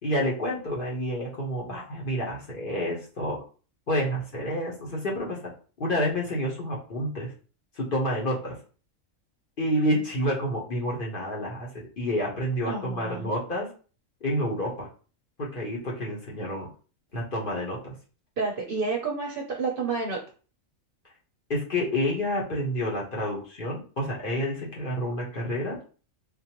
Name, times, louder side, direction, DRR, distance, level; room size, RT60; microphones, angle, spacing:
voice 1, 0.0-3.4 3.9-5.4 5.8-7.3 7.8-8.6 9.6-13.7 14.2-14.9 15.4-16.7 17.1-17.9 21.5-25.8, equal, 45° left, -3 dB, 1.1 m, -29 dB
voice 2, 12.6-13.3 18.4-20.2, right 4 dB, 55° right, 0 dB, 0.7 m, -30 dB
3.8 x 2.5 x 2.9 m, 0.38 s
omnidirectional pair, 1.4 m